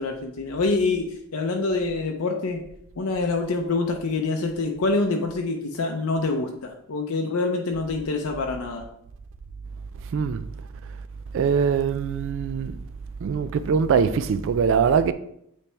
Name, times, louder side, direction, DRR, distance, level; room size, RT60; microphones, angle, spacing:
voice 1, 0.0-2.6 3.0-8.9, left 3 dB, 80° left, 0.6 m, -26 dB
voice 2, 10.1-10.5 11.3-12.8 13.2-15.1, right 6 dB, 60° right, 0.3 m, -22 dB
8.3 x 3.4 x 3.3 m
head